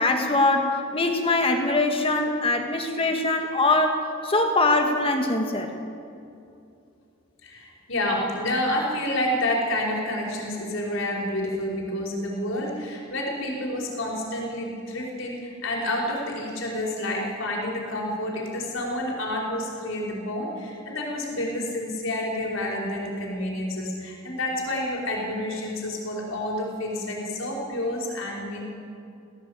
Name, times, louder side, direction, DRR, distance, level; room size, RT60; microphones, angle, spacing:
voice 1, 0.0-5.7, left 2 dB, 25° left, 4 dB, 1.7 m, -23 dB
voice 2, 7.4-28.6, left 1 dB, 70° left, -2 dB, 5.2 m, -29 dB
17.5 x 17.0 x 8.9 m, 2.6 s
head